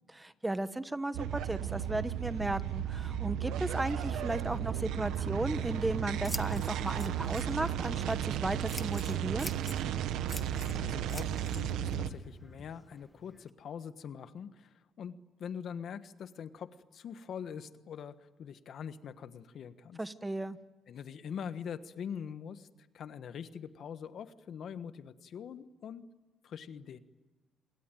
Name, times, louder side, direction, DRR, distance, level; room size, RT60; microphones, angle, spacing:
voice 1, 0.1-9.5 20.0-20.6, right 2 dB, 15° right, 13 dB, 1.2 m, -35 dB
sound 1, 1.1-12.1, right 10 dB, 90° right, 1.3 m, -34 dB
Scissors, 5.4-13.5, left 1 dB, 10° left, 1.5 m, -48 dB
voice 2, 10.8-20.0 20.9-22.7 22.9-26.0 26.4-27.0, left 7 dB, 65° left, 12 dB, 1.3 m, -43 dB
27.5 x 22.0 x 9.2 m, 1.2 s
cardioid pair, 90°, 0 cm